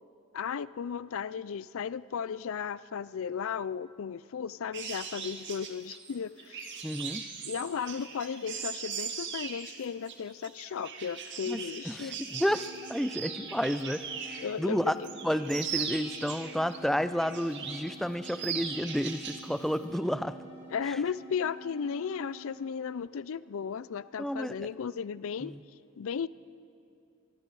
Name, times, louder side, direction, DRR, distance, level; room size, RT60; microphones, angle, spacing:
voice 1, 0.3-6.8 7.5-12.2 14.4-15.1 20.7-25.6 26.0-26.3, left 7 dB, 70° left, 18 dB, 0.4 m, -35 dB
sound 1, 4.7-14.5 14.9-16.8 17.2-17.9 18.2-19.5 19.7-20.0, right 7 dB, 60° right, 2.0 m, -39 dB
voice 2, 6.8-7.2 11.5-11.6 11.9-14.9 15.2-20.4 24.2-24.6 25.4-25.6, equal, ahead, 12 dB, 0.5 m, -31 dB
sound 2, 12.3-22.7, right 1 dB, 20° right, 6.4 m, -50 dB
24.5 x 23.5 x 4.8 m, 2.8 s
head